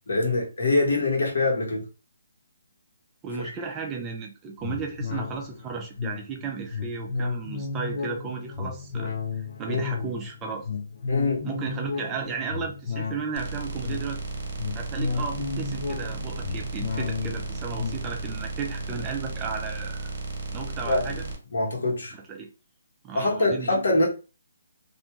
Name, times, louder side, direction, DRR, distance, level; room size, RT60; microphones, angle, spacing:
voice 1, 0.1-1.8 3.4-3.5 9.7-10.0 11.1-11.5 20.9-21.1 21.5-22.1 23.1-24.1, left 2 dB, 75° left, 1.2 m, -24 dB
voice 2, 3.2-10.7 11.4-14.2 14.8-20.1 20.5-21.2 22.1-22.5 23.0-23.7, right 5 dB, 20° right, 0.4 m, -34 dB
sound 1, 4.6-20.4 20.8-20.9, left 4 dB, 55° left, 0.5 m, -34 dB
sound 2, 13.4-21.4, right 3 dB, 50° right, 0.8 m, -34 dB
2.6 x 2.2 x 3.0 m
hypercardioid pair, 155°, 0 cm